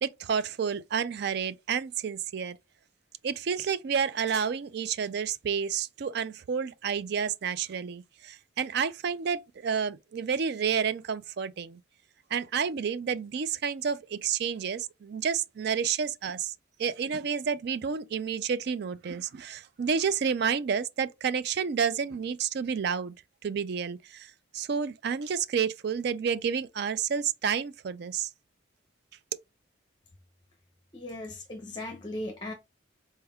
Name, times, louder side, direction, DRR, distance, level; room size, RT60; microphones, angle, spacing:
voice 1, 0.0-2.6 3.2-11.8 12.3-16.5 16.8-23.1 23.4-28.3, right 6 dB, 55° right, 0.4 m, -30 dB
voice 2, 30.9-32.5, left 1 dB, 25° left, 0.6 m, -37 dB
4.3 x 3.4 x 2.2 m
head